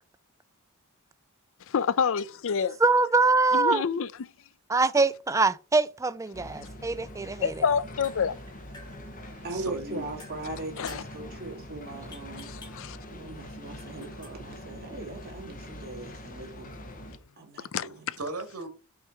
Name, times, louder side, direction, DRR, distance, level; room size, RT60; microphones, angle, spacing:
voice 1, 1.6-2.8 3.5-4.3 7.4-8.4 10.8-11.0 12.4-13.0 17.7-18.2, left 6 dB, 60° left, 0.5 m, -28 dB
voice 2, 2.8-3.8 4.7-7.5, right 3 dB, 15° right, 0.4 m, -23 dB
sound 1, 6.3-17.2, left 1 dB, 40° left, 1.2 m, -43 dB
sound 2, 7.9-16.4, left 2 dB, 20° left, 2.9 m, -54 dB
voice 3, 8.8-10.1 18.2-18.7, right 2 dB, 80° right, 1.8 m, -38 dB
voice 4, 9.4-12.5 12.8-16.9 17.4-18.1, right 2 dB, 45° right, 2.6 m, -40 dB
6.5 x 4.8 x 4.4 m
head